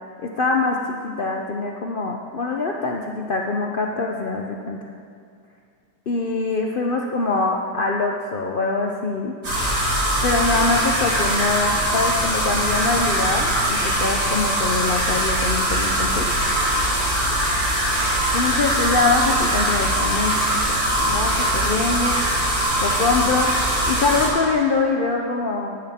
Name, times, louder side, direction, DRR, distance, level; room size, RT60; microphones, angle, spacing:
voice 1, 0.2-4.9 6.1-9.3 10.2-16.3 18.3-22.2 22.8-23.5 23.9-25.8, left 3 dB, 75° left, 1 dB, 0.4 m, -24 dB
sound 1, 9.4-24.3, right 1 dB, 65° right, 3.9 m, -21 dB
14.0 x 11.5 x 3.6 m, 2.3 s
omnidirectional pair, 1.9 m